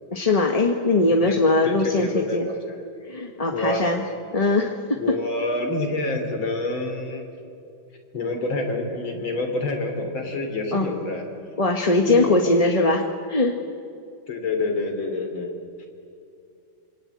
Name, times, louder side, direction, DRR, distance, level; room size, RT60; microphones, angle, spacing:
voice 1, 0.1-2.5 3.1-4.0 4.3-5.1 10.7-10.9 11.6-13.6, left 2 dB, 20° left, 3 dB, 1.2 m, -21 dB
voice 2, 1.6-2.9 3.5-3.9 5.0-7.3 8.1-11.3 12.1-12.7 14.3-15.9, left 2 dB, 85° left, 4 dB, 4.2 m, -27 dB
26.5 x 24.0 x 8.6 m, 2.5 s
omnidirectional pair, 2.1 m